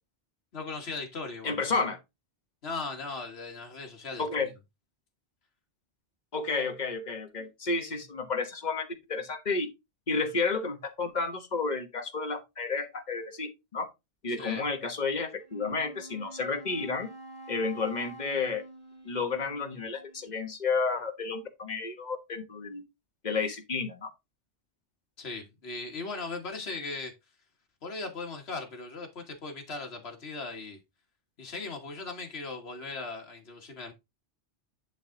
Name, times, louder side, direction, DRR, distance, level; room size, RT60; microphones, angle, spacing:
voice 1, 0.5-1.6 2.6-4.2 14.4-14.6 25.2-27.1 27.8-30.8 31.4-33.9, left 3 dB, 65° left, 1.8 m, -38 dB
voice 2, 1.4-2.0 4.2-4.5 6.3-9.7 10.1-13.8 14.2-17.1 17.5-18.6 19.0-22.8 23.2-24.1, left 4 dB, 40° left, 1.3 m, -31 dB
Wind instrument woodwind instrument, 15.4-20.3, right 2 dB, 5° left, 3.4 m, -47 dB
10.5 x 3.6 x 3.8 m
omnidirectional pair, 1.2 m